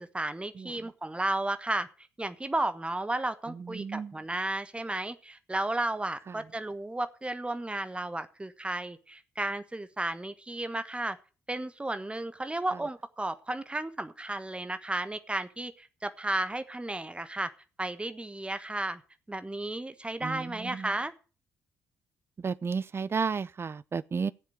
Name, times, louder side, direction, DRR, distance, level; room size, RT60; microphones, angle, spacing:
voice 1, 0.0-1.9 2.2-11.2 11.5-17.5 17.8-19.0 19.3-21.1, right 2 dB, 15° right, 1.3 m, -33 dB
voice 2, 3.5-4.1 6.3-6.4 20.2-20.9 22.4-24.3, right 5 dB, 30° right, 0.6 m, -33 dB
15.5 x 7.4 x 6.5 m
figure-of-eight pair, 40°, 8 cm